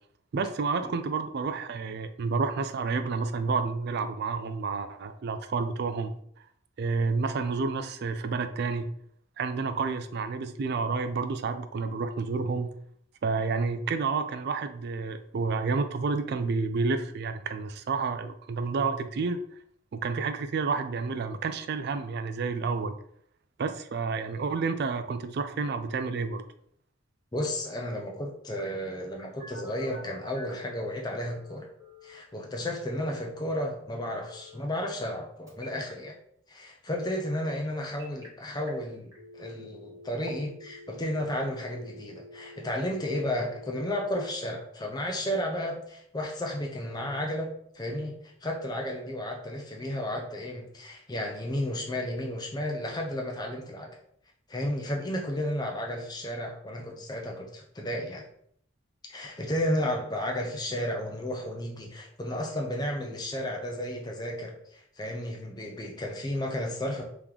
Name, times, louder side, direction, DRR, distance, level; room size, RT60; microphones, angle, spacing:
voice 1, 0.3-6.1 6.8-8.9 9.4-12.7 13.2-19.4 19.9-22.9 23.6-26.4, right 4 dB, 50° right, 10 dB, 0.3 m, -30 dB
voice 2, 27.3-31.7 32.0-36.2 36.5-54.0 54.5-58.3 59.1-67.0, left 1 dB, 20° left, 1 dB, 0.6 m, -33 dB
Telephone, 28.6-30.7 31.2-32.2 34.2-35.2 35.5-35.9 37.6-38.3 38.7-38.8 39.1-44.2, left 2 dB, 15° right, 1.1 m, -49 dB
3.6 x 3.0 x 3.6 m, 0.67 s
head